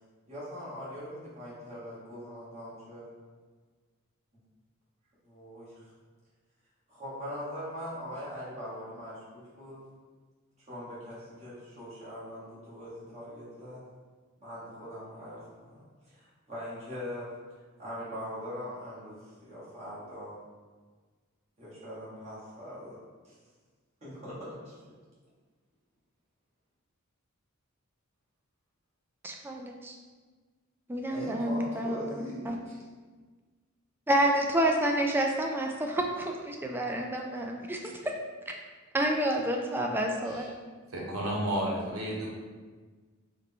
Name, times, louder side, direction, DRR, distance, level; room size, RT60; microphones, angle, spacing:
voice 1, 0.3-3.0 5.2-5.9 6.9-9.8 10.7-13.8 14.4-15.8 16.1-17.3 17.8-20.4 21.6-23.0 23.2-23.3 24.0-24.8 31.1-32.8, equal, 30° right, -9 dB, 1.4 m, -41 dB
voice 2, 29.2-29.9 30.9-32.6 34.1-38.1 38.5-38.6 38.9-40.5, right 1 dB, 10° right, 1 dB, 0.3 m, -29 dB
voice 3, 40.9-42.3, right 1 dB, 80° right, -3 dB, 0.9 m, -31 dB
3.5 x 2.2 x 3.6 m, 1.4 s
head